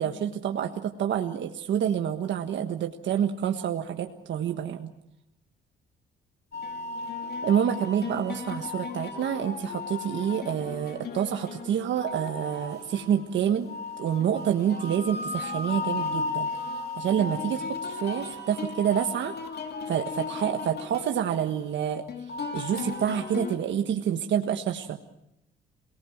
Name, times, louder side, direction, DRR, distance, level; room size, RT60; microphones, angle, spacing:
voice 1, 0.0-4.9 7.4-13.7 14.0-16.5 17.0-19.3 19.9-22.0 22.5-25.0, right 9 dB, 70° right, 5 dB, 1.5 m, -28 dB
sound 1, 6.5-23.6, left 4 dB, 55° left, 3.1 m, -35 dB
28.0 x 19.0 x 7.3 m, 0.83 s
cardioid pair, 90°, 20 cm